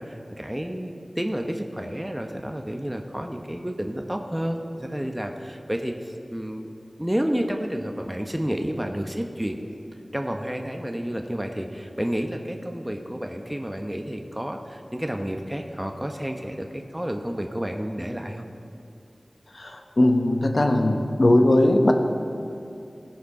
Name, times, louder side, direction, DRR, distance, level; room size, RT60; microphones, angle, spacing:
voice 1, 0.0-6.7 7.0-9.6 10.1-18.5, equal, 10° right, 4 dB, 0.9 m, -30 dB
voice 2, 19.5-21.9, left 1 dB, 65° left, 4 dB, 1.0 m, -19 dB
18.5 x 6.5 x 4.8 m, 2.6 s
wide cardioid pair, 55°, 0 cm